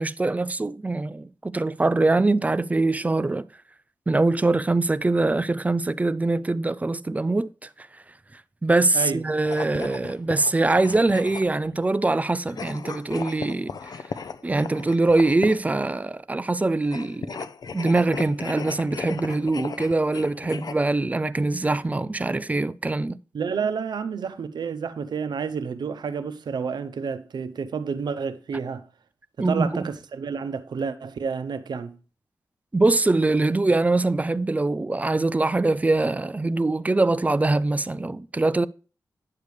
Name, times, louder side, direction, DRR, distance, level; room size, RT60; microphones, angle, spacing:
voice 1, 0.0-3.5 4.1-7.9 8.3-13.9 14.4-17.4 17.7-23.2 29.4-29.8 32.7-38.7, right 2 dB, 20° right, 0.3 m, -23 dB
sound 1, 9.4-11.7 12.5-15.7 16.8-20.7, left 5 dB, 65° left, 0.5 m, -36 dB
voice 2, 23.3-28.8 29.4-32.0, right 6 dB, 90° right, 0.7 m, -30 dB
9.5 x 6.7 x 3.2 m
wide cardioid pair, 80°, 7 cm